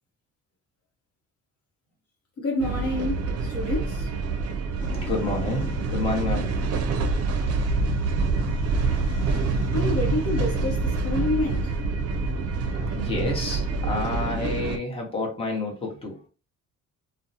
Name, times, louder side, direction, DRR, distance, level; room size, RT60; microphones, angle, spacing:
voice 1, 2.4-4.1 9.7-11.7, left 1 dB, 55° left, 0.8 m, -28 dB
sound 1, 2.6-14.8, right 3 dB, 55° right, 0.5 m, -26 dB
sound 2, 4.8-10.9, equal, 15° right, 1.2 m, -35 dB
voice 2, 5.0-6.5 6.9-7.1 12.9-16.2, left 3 dB, 20° left, 0.9 m, -29 dB
2.6 x 2.1 x 2.6 m
cardioid pair, 115°, 29 cm